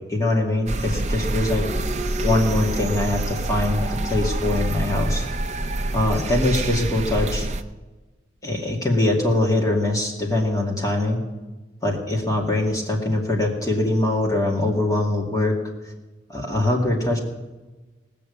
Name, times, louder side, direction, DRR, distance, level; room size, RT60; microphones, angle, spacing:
voice 1, 0.0-1.6 2.2-5.3 5.9-7.5 8.4-11.2 11.8-15.6 16.3-17.2, left 1 dB, 20° left, -1 dB, 2.3 m, -22 dB
sound 1, 0.7-7.6, right 1 dB, 40° right, 0.6 m, -26 dB
18.5 x 6.9 x 8.2 m, 1.2 s
head